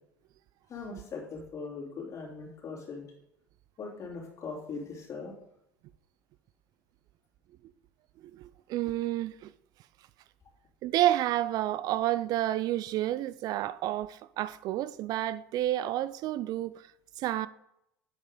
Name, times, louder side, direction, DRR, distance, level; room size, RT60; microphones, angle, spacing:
voice 1, 0.7-3.0 3.8-5.3, left 4 dB, 40° left, 3.0 m, -40 dB
voice 2, 8.3-9.5 10.8-16.9 17.2-17.5, right 14 dB, 50° right, 0.4 m, -30 dB
7.9 x 7.1 x 3.8 m
hypercardioid pair, 70°, 8 cm